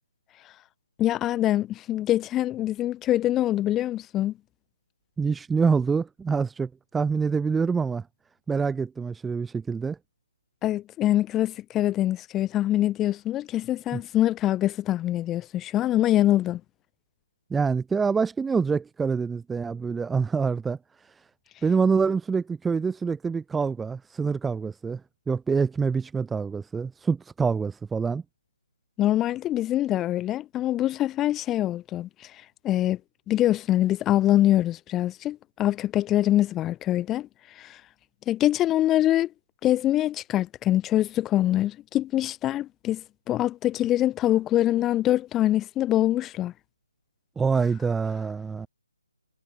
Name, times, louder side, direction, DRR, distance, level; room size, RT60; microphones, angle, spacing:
voice 1, 1.0-4.3 10.6-16.6 29.0-32.3 32.6-33.0 33.3-37.3 37.6-37.8 38.3-39.3 39.6-46.5, left 13 dB, 10° left, 5.6 m, -24 dB
voice 2, 5.2-8.0 8.5-10.0 13.9-14.0 17.5-21.3 21.6-25.0 25.3-28.2 47.4-48.7, right 5 dB, 5° right, 1.8 m, -26 dB
figure-of-eight pair, 145°, 0 cm